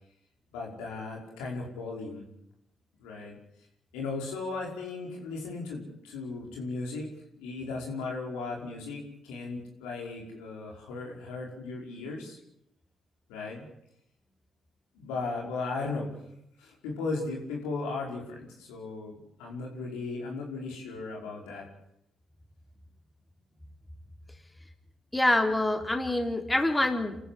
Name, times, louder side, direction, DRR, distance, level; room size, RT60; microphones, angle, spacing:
voice 1, 0.5-2.2 3.0-3.4 3.9-12.4 13.3-13.7 15.0-16.1 16.6-21.7, left 3 dB, 90° left, -1 dB, 5.1 m, -36 dB
voice 2, 25.1-27.2, left 1 dB, 15° left, 4 dB, 3.6 m, -26 dB
27.0 x 14.0 x 8.6 m, 0.79 s
supercardioid pair, 50°, 0 cm